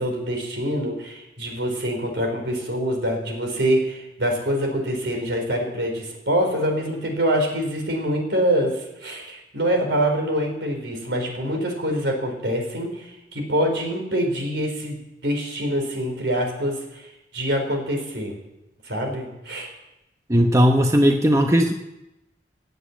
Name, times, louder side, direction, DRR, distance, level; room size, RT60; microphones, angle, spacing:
voice 1, 0.0-17.1 17.3-18.4 18.8-19.7, equal, 80° right, 2 dB, 4.4 m, -25 dB
voice 2, 20.3-21.7, equal, 15° right, 4 dB, 0.9 m, -17 dB
17.5 x 8.0 x 8.6 m, 0.93 s
head